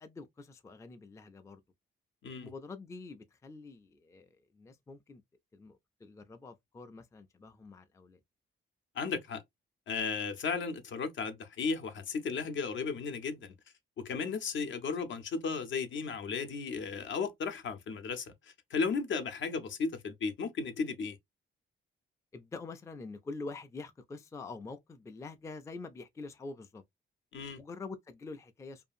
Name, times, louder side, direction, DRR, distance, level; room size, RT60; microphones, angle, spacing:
voice 1, 0.0-1.6 2.3-4.3 4.5-5.2 5.5-8.2 22.3-26.8 27.6-28.9, left 3 dB, 15° left, 0.3 m, -46 dB
voice 2, 9.0-9.4 9.9-13.5 14.0-18.3 18.7-21.2 27.3-27.6, left 5 dB, 65° left, 0.6 m, -35 dB
2.6 x 2.4 x 2.5 m
cardioid pair, 105°, 21 cm